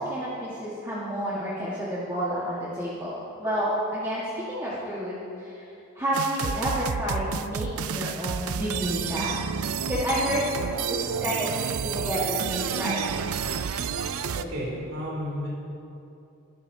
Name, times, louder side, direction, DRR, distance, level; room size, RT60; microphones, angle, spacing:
voice 1, 0.0-4.2 4.5-9.5 9.9-13.0, equal, 15° right, -8 dB, 1.7 m, -30 dB
sound 1, 6.1-14.4, right 7 dB, 90° right, 0.5 m, -30 dB
voice 2, 14.3-15.5, equal, 55° right, -5 dB, 3.3 m, -32 dB
21.5 x 13.0 x 2.9 m, 2.8 s
head